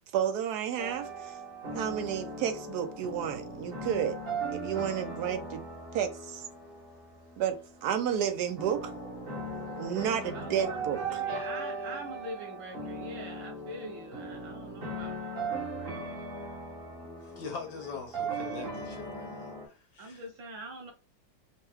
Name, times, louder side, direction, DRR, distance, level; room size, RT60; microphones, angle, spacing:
voice 1, 0.1-1.4 1.7-4.2 4.5-5.6 5.9-6.4 7.4-8.9 9.8-11.0, right 9 dB, 70° right, 1.0 m, -31 dB
sound 1, 0.8-19.7, right 3 dB, 35° right, 1.3 m, -38 dB
voice 2, 10.3-16.3 17.0-17.9 20.0-20.9, right 1 dB, 90° right, 1.9 m, -44 dB
voice 3, 17.2-20.2, left 5 dB, 65° left, 1.3 m, -42 dB
4.4 x 2.2 x 3.4 m
omnidirectional pair, 2.1 m